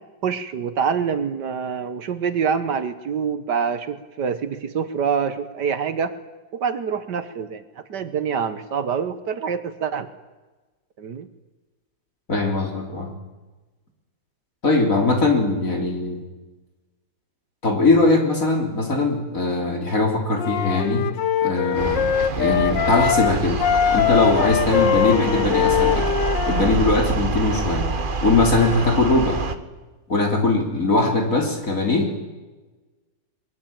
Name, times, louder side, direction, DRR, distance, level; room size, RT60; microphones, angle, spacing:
voice 1, 0.2-6.1 6.5-7.6 7.9-10.1 11.0-11.3, right 6 dB, 70° right, 11 dB, 1.8 m, -25 dB
voice 2, 12.3-13.1 14.6-16.2 17.6-21.1 21.4-22.1 22.3-23.6 23.9-26.1 26.5-27.9 28.2-29.4 30.1-32.2, left 3 dB, 45° left, 2 dB, 4.1 m, -20 dB
Wind instrument woodwind instrument, 20.4-23.3 23.6-26.8, left 9 dB, 80° left, 1.7 m, -22 dB
sound 1, 21.7-29.5, right 4 dB, 35° right, 1.1 m, -26 dB
22.5 x 21.5 x 8.9 m, 1.2 s
omnidirectional pair, 1.9 m